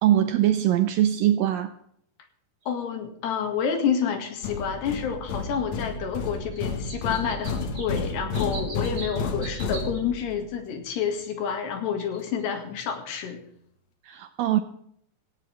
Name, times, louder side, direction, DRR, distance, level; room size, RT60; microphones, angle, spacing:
voice 1, 0.0-1.7 14.0-14.6, right 12 dB, 85° right, 10 dB, 2.0 m, -22 dB
sound 1, 2.6-2.7 4.2-4.3 5.4-5.5 5.8-5.9 6.5-10.0 10.9-11.3 11.9-12.4 12.9-13.0, right 3 dB, 20° right, 2.9 m, -42 dB
voice 2, 2.7-13.4, left 7 dB, 75° left, 5 dB, 4.1 m, -29 dB
sound 2, 4.4-10.4, left 4 dB, 55° left, 2.1 m, -31 dB
18.0 x 17.5 x 3.5 m, 0.68 s
omnidirectional pair, 4.9 m